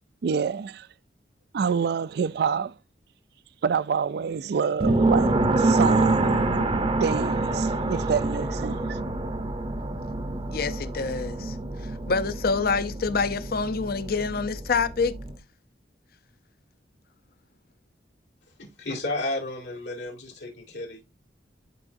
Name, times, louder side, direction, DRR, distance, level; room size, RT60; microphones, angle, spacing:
voice 1, 0.2-0.9 1.5-2.7 3.6-6.6 7.0-9.0, right 6 dB, 65° right, 0.4 m, -27 dB
sound 1, 4.8-15.3, right 2 dB, 30° right, 0.8 m, -26 dB
voice 2, 10.5-11.6 11.8-15.2, left 4 dB, 60° left, 0.7 m, -27 dB
voice 3, 18.6-21.0, left 2 dB, 85° left, 2.5 m, -32 dB
11.0 x 4.6 x 2.6 m
head